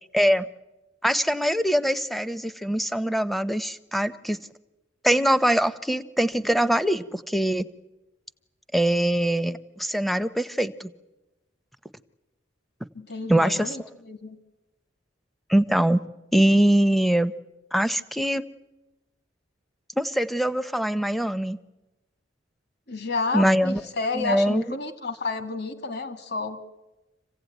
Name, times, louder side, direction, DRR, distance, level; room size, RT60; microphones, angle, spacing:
voice 1, 0.1-0.5 1.0-4.4 5.0-7.7 8.7-10.9 13.3-13.8 15.5-16.0 16.3-17.3 17.7-18.4 20.0-21.6 23.3-23.8 24.1-24.8, right 1 dB, ahead, 13 dB, 0.7 m, -23 dB
voice 2, 12.9-14.4 22.9-26.6, left 3 dB, 60° left, 9 dB, 2.0 m, -31 dB
26.0 x 16.0 x 9.2 m, 1.1 s
head